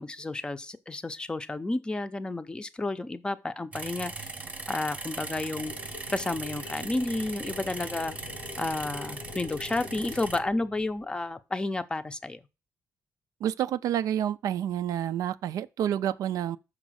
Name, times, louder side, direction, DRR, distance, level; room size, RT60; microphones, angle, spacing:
voice 1, 0.0-4.3 4.7-5.7 6.1-8.2 8.6-12.4, left 2 dB, 15° left, 0.5 m, -31 dB
sound 1, 3.7-10.4, right 3 dB, 25° right, 0.7 m, -39 dB
sound 2, 5.6-11.4, left 5 dB, 80° left, 0.8 m, -45 dB
voice 2, 13.4-16.6, right 10 dB, 80° right, 0.4 m, -29 dB
6.3 x 5.0 x 6.2 m
wide cardioid pair, 155°, 6 cm